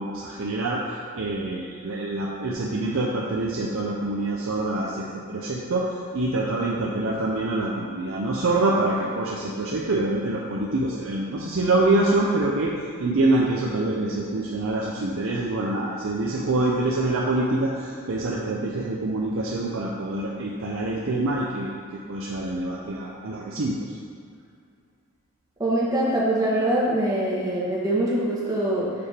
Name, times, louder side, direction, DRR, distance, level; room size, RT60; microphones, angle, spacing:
voice 1, 0.0-12.7 13.0-24.0, right 2 dB, 75° right, -4 dB, 0.6 m, -25 dB
voice 2, 25.6-28.9, right 1 dB, 15° right, -6 dB, 1.1 m, -23 dB
6.8 x 3.4 x 4.2 m, 2.3 s
head